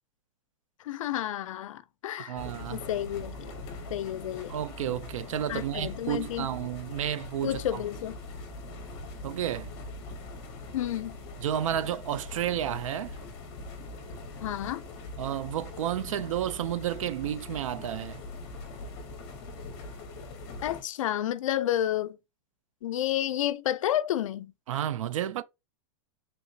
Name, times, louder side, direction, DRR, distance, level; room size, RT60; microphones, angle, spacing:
voice 1, 0.8-2.4 2.7-3.5 3.9-4.6 5.5-6.5 7.4-8.2 10.7-11.2 14.4-14.8 20.6-22.2 22.8-24.5, left 12 dB, 90° left, 0.4 m, -30 dB
voice 2, 2.3-2.9 4.5-7.8 9.2-9.7 11.4-13.2 15.2-18.2 24.7-25.4, right 10 dB, 85° right, 0.4 m, -31 dB
sound 1, 2.4-20.8, left 2 dB, 25° left, 0.7 m, -42 dB
3.4 x 2.9 x 2.6 m
supercardioid pair, 175°, 16 cm